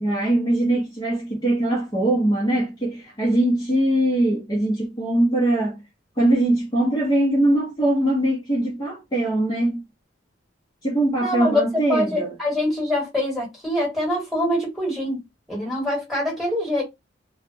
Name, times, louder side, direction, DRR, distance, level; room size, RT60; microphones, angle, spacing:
voice 1, 0.0-5.8 6.2-9.8 10.8-12.3, right 1 dB, 20° left, 0.6 m, -21 dB
voice 2, 11.2-15.2 15.5-16.8, left 1 dB, ahead, 1.2 m, -24 dB
2.1 x 2.0 x 3.2 m
head